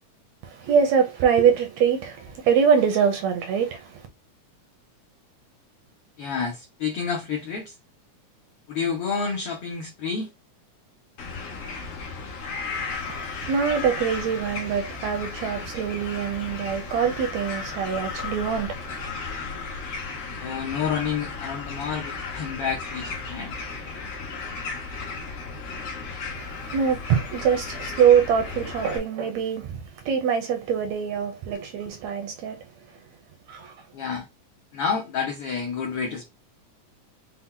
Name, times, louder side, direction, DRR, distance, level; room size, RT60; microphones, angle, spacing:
voice 1, 0.4-4.1 12.9-19.1 26.3-33.0 33.5-33.8, right 7 dB, 75° right, 1.7 m, -24 dB
voice 2, 6.2-7.7 8.7-10.3 20.3-23.5 33.9-34.3 34.7-36.3, left 6 dB, 85° left, 1.2 m, -29 dB
sound 1, 11.2-29.0, left 4 dB, 60° left, 1.5 m, -35 dB
5.7 x 2.2 x 3.7 m
omnidirectional pair, 3.7 m